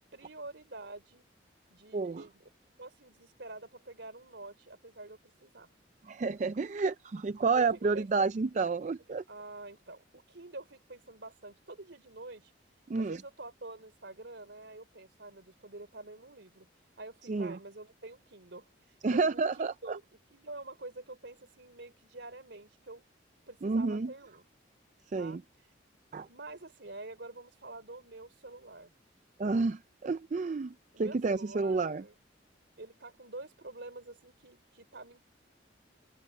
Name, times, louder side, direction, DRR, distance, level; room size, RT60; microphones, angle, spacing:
voice 1, 0.1-1.2 1.7-2.4 2.8-5.7 7.5-8.1 9.3-12.5 12.9-16.7 17.0-20.0 20.3-23.0 23.5-24.4 25.1-25.4 26.3-28.9 30.9-32.1 32.8-35.2, right 2 dB, 70° right, 3.3 m, -47 dB
voice 2, 1.9-2.2 6.1-9.2 12.9-13.2 17.3-17.6 19.0-20.0 23.6-24.1 25.1-25.4 26.1-26.3 29.4-32.0, right 4 dB, 40° right, 0.4 m, -30 dB
open air
head